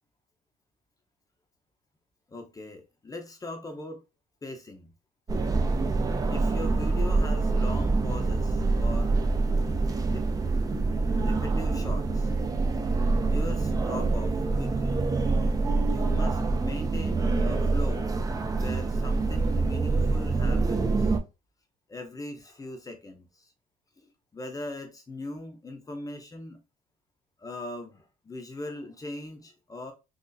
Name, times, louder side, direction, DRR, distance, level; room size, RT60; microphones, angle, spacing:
voice 1, 2.3-4.0 4.4-4.9 6.3-9.2 10.0-10.2 11.2-12.3 13.2-15.1 15.8-18.0 18.5-21.2 21.9-23.5 24.0-26.6 27.4-29.9, left 2 dB, 20° left, 0.7 m, -40 dB
sound 1, 5.3-21.2, right 3 dB, 20° right, 0.5 m, -26 dB
3.9 x 2.4 x 2.6 m
cardioid pair, 110°, 17 cm